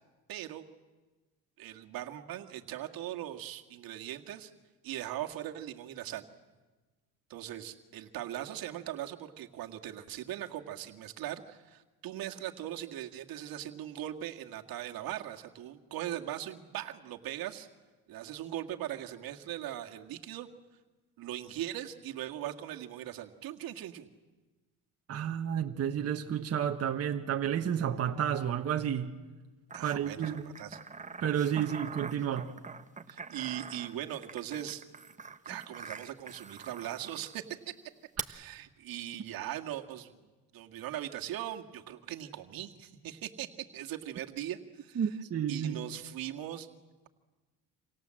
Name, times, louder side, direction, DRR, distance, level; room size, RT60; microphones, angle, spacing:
voice 1, 0.3-0.6 1.6-4.5 4.8-6.2 7.3-17.7 18.1-20.5 21.2-24.1 29.7-30.8 33.1-34.8 35.4-37.7 38.3-40.1 40.5-45.0 45.5-46.7, right 12 dB, 70° right, 4 dB, 1.9 m, -40 dB
voice 2, 25.1-29.1 29.8-30.4 31.2-32.5 44.9-45.9, right 9 dB, 40° right, 4 dB, 1.4 m, -31 dB
sound 1, 29.7-37.4 38.2-38.3, right 5 dB, 20° right, 1.2 m, -44 dB
28.5 x 27.0 x 7.7 m, 1.2 s
cardioid pair, 115°, 36 cm